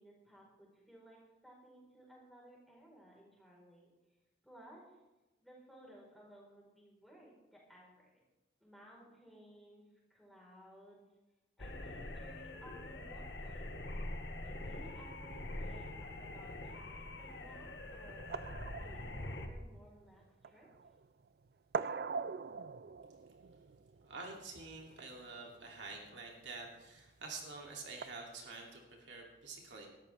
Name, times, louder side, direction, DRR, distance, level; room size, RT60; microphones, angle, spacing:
voice 1, 0.0-3.9 4.4-5.0 5.4-8.2 8.6-9.8 10.1-11.0 11.6-13.8 14.4-18.3 18.8-20.7, equal, ahead, -3 dB, 4.5 m, -58 dB
sound 1, 11.6-19.5, left 1 dB, 70° left, 1.5 m, -44 dB
sound 2, 14.6-28.0, right 5 dB, 55° right, 0.4 m, -46 dB
voice 2, 24.0-29.9, right 3 dB, 80° right, 0 dB, 2.9 m, -48 dB
19.5 x 13.5 x 3.5 m, 1.0 s
head